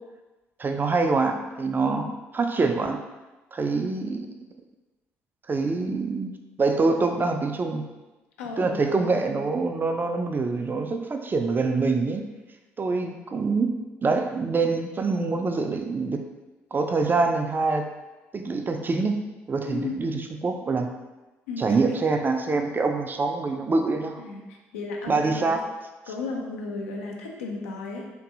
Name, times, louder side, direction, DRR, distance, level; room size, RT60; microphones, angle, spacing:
voice 1, 0.6-2.0 2.3-3.0 3.5-4.3 5.5-6.3 6.6-7.8 8.6-12.2 12.8-13.7 14.0-16.2 16.7-17.9 18.3-19.1 19.5-20.9 21.6-24.2 25.1-25.6, right 3 dB, 25° right, 5 dB, 0.3 m, -25 dB
voice 2, 8.4-9.1 19.7-20.0 21.5-21.7 24.2-25.6 26.1-28.1, left 3 dB, 80° left, 0 dB, 0.4 m, -34 dB
2.6 x 2.6 x 2.4 m, 1.1 s
figure-of-eight pair, 45°, 7 cm